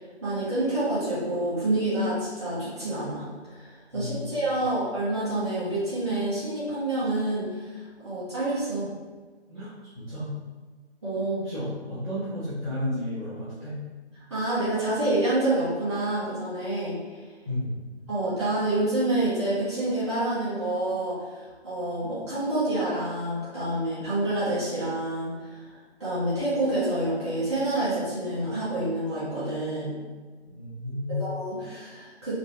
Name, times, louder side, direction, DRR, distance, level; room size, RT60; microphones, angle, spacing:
voice 1, 0.2-8.9 11.0-11.4 14.3-17.0 18.1-25.6 26.0-30.0 31.1-32.4, right 1 dB, 5° right, -12 dB, 1.3 m, -28 dB
voice 2, 3.9-4.7 9.5-10.3 11.4-13.8 17.4-17.8 30.5-31.2, left 1 dB, 15° left, -14 dB, 1.0 m, -33 dB
4.0 x 2.6 x 3.6 m, 1.4 s
figure-of-eight pair, 165°, 34 cm